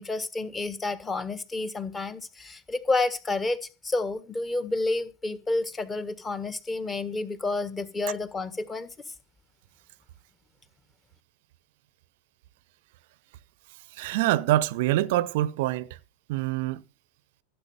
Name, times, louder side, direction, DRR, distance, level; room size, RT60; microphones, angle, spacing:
voice 1, 0.0-3.6 3.8-8.9, left 2 dB, 15° left, 1.6 m, -30 dB
voice 2, 14.0-15.9 16.3-16.8, right 15 dB, 50° right, 0.8 m, -25 dB
16.0 x 8.6 x 6.9 m
figure-of-eight pair, 90°, 0 cm